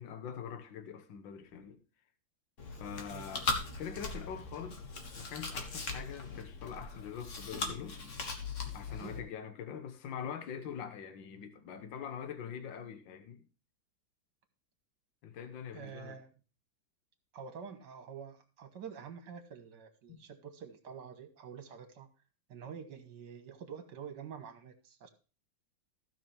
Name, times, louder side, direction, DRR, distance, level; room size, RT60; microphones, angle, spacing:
voice 1, 0.0-1.8 2.7-3.5 3.8-4.8 5.2-8.1 8.7-13.5 15.2-16.1 20.1-20.2, left 8 dB, 75° left, 1.7 m, -44 dB
Chewing mastication, 2.6-9.2, left 4 dB, 45° left, 1.6 m, -39 dB
voice 2, 8.9-9.3 15.7-16.3 17.3-22.1 22.5-25.1, right 7 dB, 65° right, 1.9 m, -47 dB
15.5 x 5.9 x 3.3 m
omnidirectional pair, 2.1 m